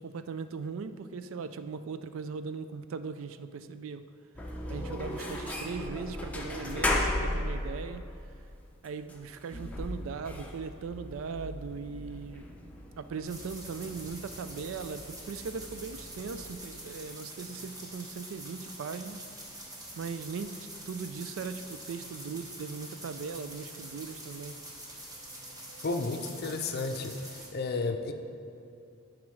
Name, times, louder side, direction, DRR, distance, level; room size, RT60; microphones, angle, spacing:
voice 1, 0.0-4.1 4.7-8.1 8.8-12.5 13.0-19.3 20.0-20.6 20.9-24.6, right 5 dB, 70° right, 11 dB, 0.4 m, -39 dB
sound 1, 4.3-16.6, left 1 dB, 5° left, 0.7 m, -37 dB
sound 2, 13.3-27.5, right 1 dB, 20° right, 1.0 m, -45 dB
voice 2, 25.8-27.2 27.5-28.1, left 3 dB, 50° left, 6 dB, 0.5 m, -32 dB
10.5 x 5.0 x 3.2 m, 2.6 s
head